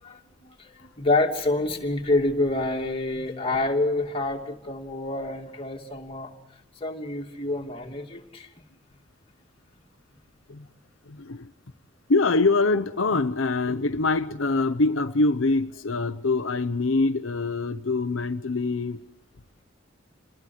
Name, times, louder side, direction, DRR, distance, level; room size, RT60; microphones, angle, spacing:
voice 1, 0.0-6.3 6.8-8.5, left 2 dB, 30° left, 2.9 m, -27 dB
voice 2, 11.1-11.5 12.1-19.0, left 3 dB, 80° left, 0.9 m, -24 dB
27.0 x 20.5 x 8.0 m
head